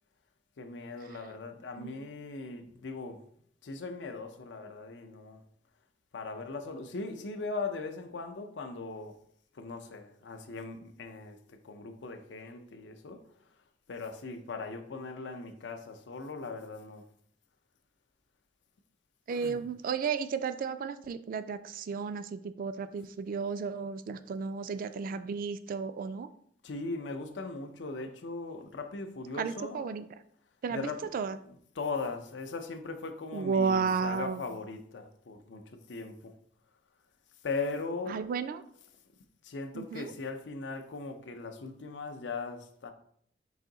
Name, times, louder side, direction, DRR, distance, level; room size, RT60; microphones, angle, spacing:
voice 1, 0.6-3.2 3.6-5.4 6.1-9.1 9.5-13.2 13.9-17.0 19.3-19.6 26.6-29.9 30.7-36.3 37.4-38.2 39.4-42.9, left 3 dB, 80° left, 0.5 m, -39 dB
voice 2, 19.3-26.3 29.4-30.1 30.6-31.4 33.3-34.4 38.1-38.6 39.7-40.1, right 5 dB, 50° right, 0.3 m, -33 dB
4.8 x 2.6 x 3.8 m
head